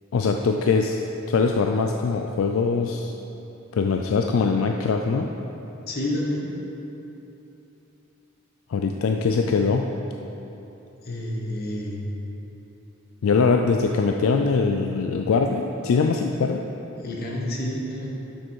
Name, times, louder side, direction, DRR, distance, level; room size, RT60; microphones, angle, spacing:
voice 1, 0.1-1.0 1.3-3.1 3.7-5.3 8.7-9.9 13.2-16.6, left 4 dB, 75° left, 3 dB, 0.4 m, -22 dB
voice 2, 5.9-6.5 11.0-12.2 16.9-18.1, left 1 dB, 50° left, -2 dB, 1.3 m, -29 dB
7.6 x 6.4 x 4.7 m, 3.0 s
head